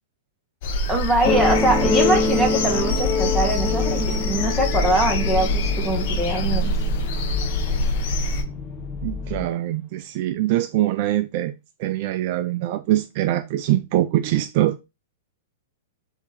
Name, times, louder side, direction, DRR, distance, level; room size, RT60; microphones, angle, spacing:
sound 1, 0.6-8.4, left 2 dB, 55° left, 0.9 m, -24 dB
voice 1, 0.9-6.7, right 1 dB, 5° right, 1.6 m, -23 dB
sound 2, 1.2-8.3 9.2-9.3, left 2 dB, 10° left, 1.5 m, -26 dB
sound 3, 3.7-9.5, left 5 dB, 30° left, 0.8 m, -34 dB
voice 2, 9.0-11.5 11.8-14.8, right 14 dB, 50° right, 0.4 m, -23 dB
4.4 x 2.9 x 4.0 m
hypercardioid pair, 110°, 0 cm